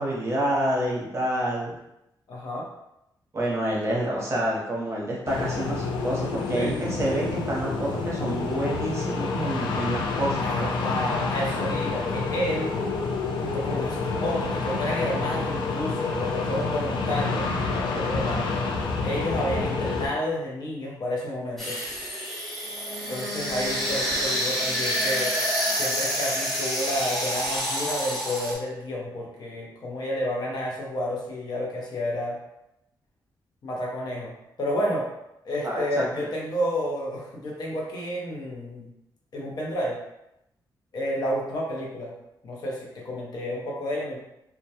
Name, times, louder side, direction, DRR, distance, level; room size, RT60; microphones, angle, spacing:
voice 1, 0.0-1.7 3.3-10.7 35.6-36.1, right 1 dB, 35° right, -4 dB, 0.7 m, -28 dB
voice 2, 2.3-2.7 6.5-6.7 10.4-12.7 13.4-18.6 19.0-21.8 23.1-25.3 25.7-32.4 33.6-34.3 34.6-35.1 35.4-38.9 39.3-40.0 40.9-42.1 42.4-44.2, left 1 dB, 55° left, -3 dB, 0.7 m, -30 dB
sound 1, 5.3-20.1, left 4 dB, 85° left, 0.4 m, -28 dB
sound 2, 21.6-28.6, equal, 5° left, 0.7 m, -28 dB
2.2 x 2.1 x 2.7 m, 0.84 s
wide cardioid pair, 130°, 8 cm